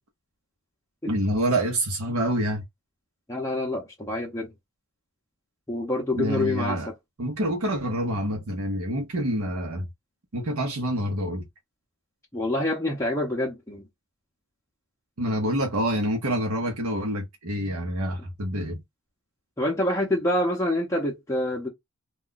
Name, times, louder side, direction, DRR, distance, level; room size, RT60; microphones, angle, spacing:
voice 1, 1.1-2.6 6.1-6.9 7.2-9.9 10.3-11.4 15.2-18.8, right 1 dB, 75° right, 0.8 m, -27 dB
voice 2, 3.3-4.5 5.7-6.9 12.3-13.8 19.6-21.7, left 1 dB, 15° left, 0.6 m, -26 dB
2.3 x 2.2 x 3.8 m
head